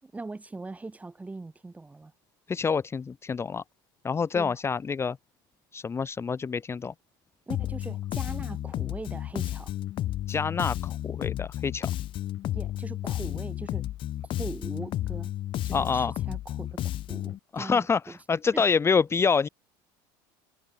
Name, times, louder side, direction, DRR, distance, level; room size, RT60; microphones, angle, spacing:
voice 1, 0.0-2.1 4.3-4.6 7.5-9.7 12.5-13.9 14.4-15.3 15.6-16.8 17.1-18.2 18.5-18.7, right 3 dB, 15° right, 4.2 m, -40 dB
voice 2, 2.5-3.6 4.0-5.2 5.7-6.9 10.3-11.9 15.7-16.1 17.5-19.5, left 5 dB, 25° left, 1.5 m, -27 dB
Bass guitar, 7.5-17.4, left 13 dB, 50° left, 1.4 m, -32 dB
supercardioid pair, 105°, 11 cm